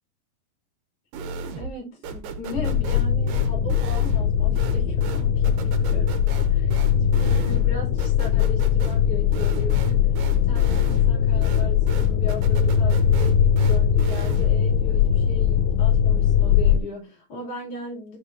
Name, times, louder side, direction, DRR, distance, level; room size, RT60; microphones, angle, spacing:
sound 1, 1.1-1.8 2.0-14.7, right 3 dB, 90° right, 2.6 m, -35 dB
voice 1, 1.5-6.2 6.5-10.1 10.3-18.2, left 2 dB, 45° left, 3.8 m, -37 dB
sound 2, 2.6-16.8, left 8 dB, 90° left, 2.2 m, -20 dB
10.5 x 4.0 x 2.7 m
omnidirectional pair, 3.8 m